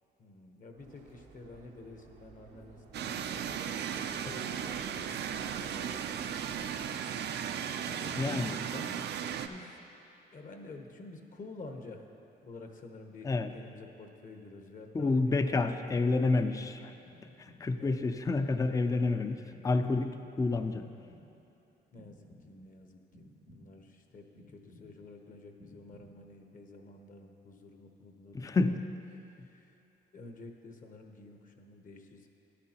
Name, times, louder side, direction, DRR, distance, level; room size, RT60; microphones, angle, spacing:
voice 1, 0.2-6.0 7.8-9.1 9.4-9.8 10.3-12.1 12.4-15.3 15.7-17.0 17.8-18.8 21.9-28.8 29.4-29.8 30.1-32.3, left 3 dB, 50° left, 4 dB, 1.0 m, -50 dB
Subway metro underground, 0.8-6.9, right 5 dB, 90° right, 0.9 m, -56 dB
sound 1, 2.9-9.5, right 8 dB, 70° right, 0.4 m, -36 dB
voice 2, 8.1-8.5 13.2-13.5 14.9-16.8 17.4-20.8 28.3-28.8 29.4-29.5, left 3 dB, 20° left, 9 dB, 0.4 m, -29 dB
sound 2, 17.1-17.8 18.3-19.1 19.5-20.3 20.7-21.5 22.0-22.7 23.1-23.9 24.3-25.2 25.6-26.4, left 1 dB, 85° left, 2.5 m, -57 dB
13.0 x 10.0 x 2.9 m, 2.9 s
cardioid pair, 95°, 18 cm